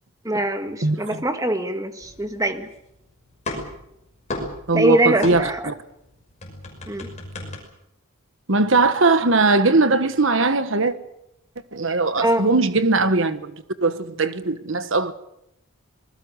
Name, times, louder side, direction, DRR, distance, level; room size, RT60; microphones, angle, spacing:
voice 1, 0.2-2.7 4.7-5.7 6.9-7.1 12.2-12.5, right 1 dB, 15° right, 1.7 m, -23 dB
sound 1, 2.0-3.0 3.2-5.8 6.0-7.6, left 2 dB, 30° left, 6.0 m, -33 dB
voice 2, 4.7-5.7 8.5-10.9 11.7-13.5 13.8-15.1, right 3 dB, 60° right, 1.3 m, -19 dB
26.0 x 20.5 x 6.5 m
head